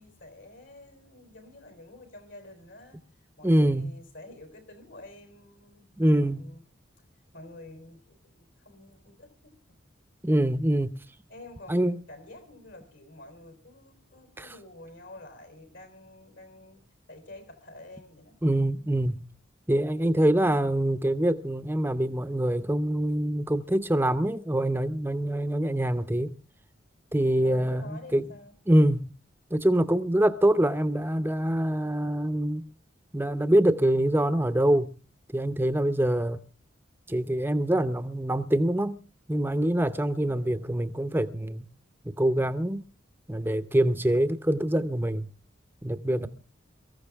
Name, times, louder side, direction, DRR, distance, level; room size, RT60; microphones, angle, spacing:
voice 1, 0.0-6.6 7.3-9.8 11.3-16.8 17.1-18.4 27.2-28.5 40.2-40.6 46.1-46.3, left 2 dB, 70° left, 3.6 m, -49 dB
voice 2, 3.4-4.0 6.0-6.5 10.2-11.0 11.7-12.0 14.4-14.5 18.4-19.2 19.7-26.3 27.1-28.2 28.7-29.1 29.5-32.6 33.1-34.9 35.3-36.4 37.1-39.0 39.3-41.7 42.0-42.8 43.3-45.3 45.8-46.3, right 1 dB, 10° right, 0.7 m, -25 dB
23.0 x 14.5 x 3.5 m
head